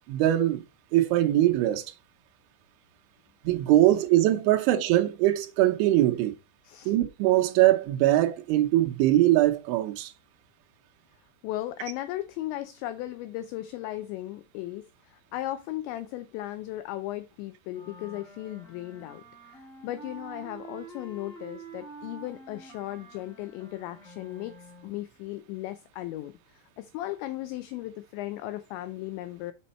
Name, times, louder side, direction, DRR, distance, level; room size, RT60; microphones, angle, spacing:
voice 1, 0.1-0.6 0.9-1.9 3.4-6.3 6.9-10.1, right 14 dB, 75° right, 3.2 m, -22 dB
voice 2, 11.4-29.5, left 15 dB, 85° left, 2.6 m, -36 dB
sound 1, 17.7-25.0, right 3 dB, ahead, 2.5 m, -47 dB
7.6 x 5.3 x 4.2 m
omnidirectional pair, 5.7 m